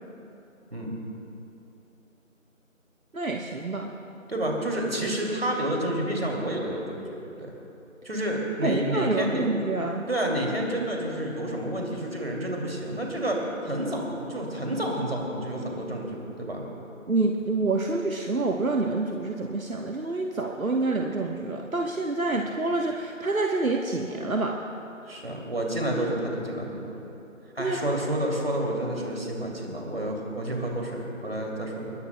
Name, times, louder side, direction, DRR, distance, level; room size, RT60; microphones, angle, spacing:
voice 1, 3.1-3.9 8.6-10.1 17.1-24.6 27.6-27.9, right 3 dB, 85° right, 1 dB, 1.2 m, -27 dB
voice 2, 4.3-7.5 8.0-9.4 10.1-16.6 25.0-27.0 27.5-31.9, right 1 dB, 45° right, -1 dB, 2.6 m, -29 dB
21.5 x 21.0 x 2.2 m, 3.0 s
figure-of-eight pair, 175°, 41 cm